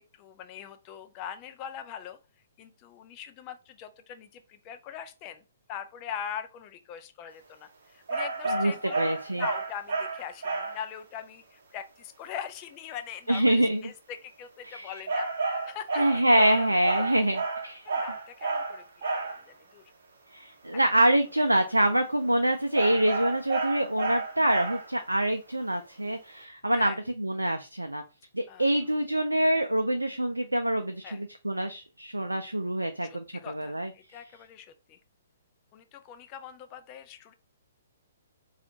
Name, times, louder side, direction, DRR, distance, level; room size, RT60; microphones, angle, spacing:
voice 1, 0.0-2.2 2.6-17.1 17.8-19.9 21.4-21.5 26.7-27.0 28.5-28.8 31.0-31.2 33.0-35.0 35.7-37.3, left 9 dB, 30° left, 9 dB, 0.4 m, -42 dB
sound 1, 8.1-10.9 15.1-19.4 22.7-25.0, right 3 dB, 55° right, 0.7 m, -31 dB
voice 2, 8.5-9.4 13.3-13.8 14.6-14.9 16.0-17.9 20.3-28.0 28.3-33.9, right 1 dB, 90° right, 7 dB, 0.3 m, -26 dB
4.2 x 2.4 x 2.6 m, 0.30 s
figure-of-eight pair, 125°, 0 cm